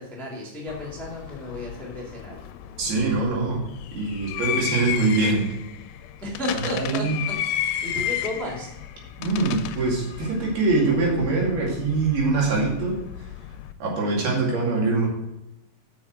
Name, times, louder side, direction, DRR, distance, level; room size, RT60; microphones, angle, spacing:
voice 1, 0.0-2.4 6.2-7.0 7.5-8.7, left 1 dB, ahead, -3 dB, 0.5 m, -33 dB
sound 1, 0.7-13.7, left 10 dB, 80° left, 2.2 m, -33 dB
voice 2, 2.8-3.6 3.9-5.5 6.7-7.2 9.2-13.0 13.8-15.1, right 3 dB, 75° right, -3 dB, 4.3 m, -23 dB
7.0 x 6.7 x 6.0 m, 0.90 s
omnidirectional pair, 4.6 m